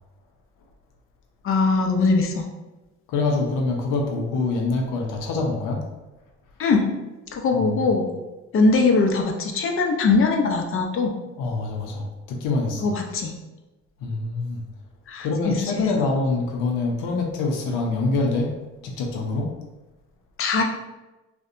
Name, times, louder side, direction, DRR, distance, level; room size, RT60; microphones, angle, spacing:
voice 1, 1.4-2.4 6.6-6.9 7.3-8.1 8.5-11.2 12.8-13.3 15.1-15.8 20.4-20.6, left 3 dB, 45° left, 2 dB, 0.5 m, -21 dB
voice 2, 3.1-5.8 7.5-7.8 11.4-12.9 14.0-14.6 15.2-18.5 18.8-19.5, left 3 dB, 90° left, 1 dB, 0.6 m, -25 dB
2.6 x 2.2 x 2.4 m, 1.1 s
cardioid pair, 90°, 30 cm